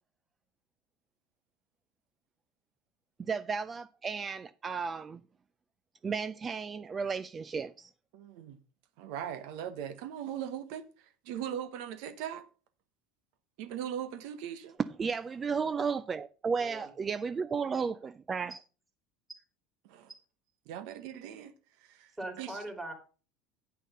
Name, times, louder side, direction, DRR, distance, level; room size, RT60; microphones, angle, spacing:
voice 1, 3.2-5.2 6.0-7.9 15.0-18.5, right 5 dB, 30° right, 0.4 m, -34 dB
voice 2, 8.1-8.6 9.0-12.4 13.6-14.8 19.8-20.1 20.7-21.5 21.9-22.1 22.4-22.6, right 9 dB, 70° right, 1.0 m, -39 dB
voice 3, 22.2-22.9, right 1 dB, 10° right, 3.1 m, -41 dB
8.4 x 5.6 x 5.4 m
supercardioid pair, 95°, 0 cm